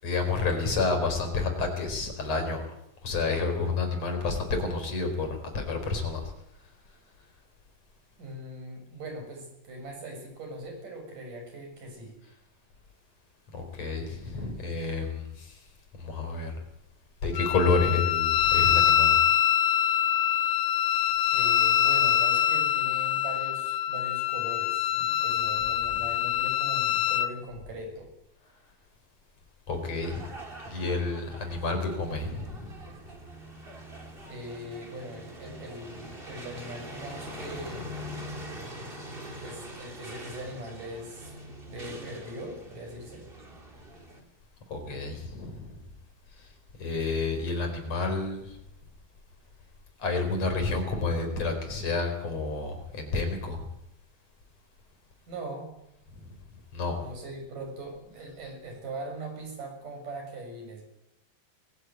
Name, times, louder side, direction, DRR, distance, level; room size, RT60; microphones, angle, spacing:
voice 1, 0.0-2.6 3.0-6.3 13.5-15.6 16.0-16.6 17.2-19.2 29.7-30.2 30.7-32.7 44.7-45.8 46.4-46.5 46.8-48.6 50.0-53.7 56.7-57.0, left 3 dB, 45° left, 5 dB, 5.7 m, -29 dB
voice 2, 8.2-12.2 21.3-28.1 34.2-37.9 39.4-41.3 41.7-43.2 55.3-55.8 57.0-60.8, right 1 dB, 55° right, 4 dB, 8.2 m, -41 dB
Wind instrument woodwind instrument, 17.4-27.3, left 10 dB, 80° left, 2.8 m, -24 dB
sound 1, 29.7-44.2, equal, 15° right, 3.2 m, -43 dB
22.5 x 16.0 x 9.5 m, 0.79 s
omnidirectional pair, 4.4 m